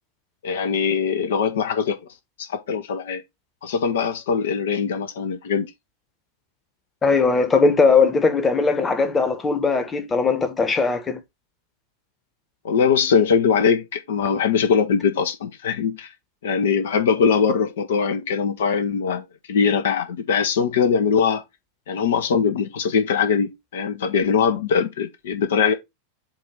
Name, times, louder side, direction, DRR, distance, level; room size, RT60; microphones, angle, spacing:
voice 1, 0.4-2.0 2.4-3.2 3.6-5.7 12.6-16.1 16.4-21.4 21.9-25.7, left 6 dB, 60° left, 0.8 m, -21 dB
voice 2, 7.0-11.2, left 4 dB, 20° left, 1.1 m, -19 dB
7.8 x 2.6 x 4.8 m
figure-of-eight pair, 90°, 0 cm